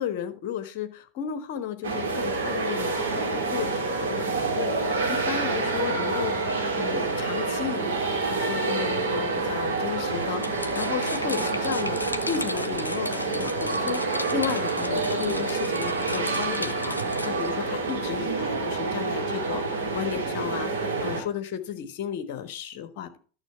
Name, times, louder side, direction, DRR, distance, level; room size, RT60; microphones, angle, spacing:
voice 1, 0.0-14.0 14.3-23.2, left 9 dB, 50° left, 8 dB, 1.3 m, -34 dB
sound 1, 1.8-21.2, right 3 dB, 65° right, 2.8 m, -28 dB
sound 2, 10.3-17.5, left 2 dB, 80° left, 0.6 m, -36 dB
11.5 x 6.8 x 4.5 m, 0.40 s
figure-of-eight pair, 85°, 0 cm